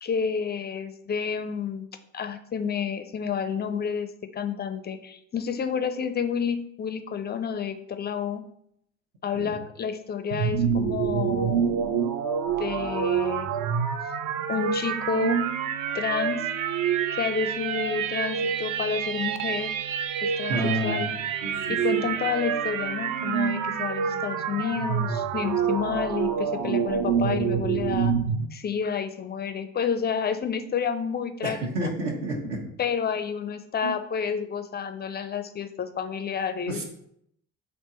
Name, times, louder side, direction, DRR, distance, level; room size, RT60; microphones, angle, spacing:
voice 1, 0.0-1.9 2.1-8.4 9.2-11.7 12.6-13.5 14.5-15.4 15.9-16.4 17.1-19.7 20.2-20.6 20.8-21.1 21.7-28.1 28.5-31.9 32.8-36.8, left 6 dB, 25° left, 9 dB, 0.4 m, -30 dB
sound 1, 10.3-28.5, right 7 dB, 45° right, 0.5 m, -27 dB
voice 2, 20.5-21.1 21.4-22.0 31.4-32.7 33.8-34.0 36.7-36.8, right 1 dB, 65° right, -1 dB, 1.1 m, -30 dB
3.4 x 2.9 x 4.3 m, 0.74 s
hypercardioid pair, 50°, 43 cm